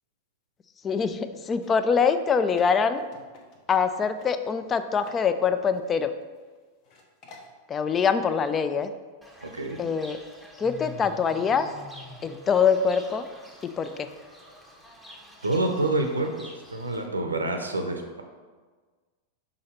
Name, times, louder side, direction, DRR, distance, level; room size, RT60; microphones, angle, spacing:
voice 1, 0.8-3.0 3.7-6.1 7.7-8.9 9.8-10.2 10.6-11.7 12.2-13.3 13.8-14.1, left 6 dB, 25° left, 11 dB, 0.4 m, -24 dB
sound 1, 1.5-3.9 4.2-4.3 4.7-5.2 5.4-6.5 6.8-7.5, left 3 dB, 40° left, 0.9 m, -51 dB
Fowl / Bird, 9.2-17.1, left 1 dB, 5° left, 0.9 m, -47 dB
voice 2, 9.4-9.8 15.4-16.3 16.7-18.2, right 2 dB, 80° right, 5 dB, 0.6 m, -27 dB
6.3 x 3.9 x 4.3 m, 1.4 s
figure-of-eight pair, 90°, 0 cm